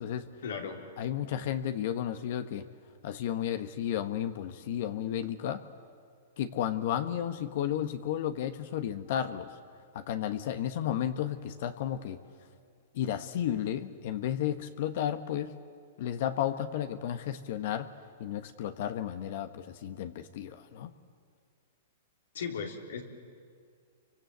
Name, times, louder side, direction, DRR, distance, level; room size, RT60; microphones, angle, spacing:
voice 1, 0.4-0.8 22.3-23.0, left 6 dB, 80° left, 2 dB, 3.7 m, -36 dB
voice 2, 1.0-2.7 3.0-5.6 6.4-9.5 9.9-12.2 12.9-15.5 16.0-17.9 18.2-20.9, left 10 dB, 60° left, 9 dB, 1.3 m, -33 dB
30.0 x 24.5 x 8.0 m, 2.1 s
hypercardioid pair, 130°, 0 cm